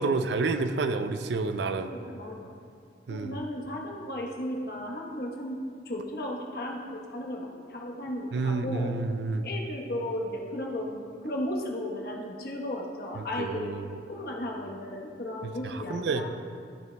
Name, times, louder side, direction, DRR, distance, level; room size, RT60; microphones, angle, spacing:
voice 1, 0.0-1.9 3.1-3.4 8.3-9.5 13.2-14.0 15.4-16.2, right 3 dB, 70° right, 8 dB, 0.4 m, -29 dB
voice 2, 1.9-2.5 3.1-8.9 9.4-13.7 14.0-16.3, left 1 dB, 55° left, 0 dB, 1.0 m, -35 dB
13.5 x 6.3 x 2.2 m, 2.3 s
head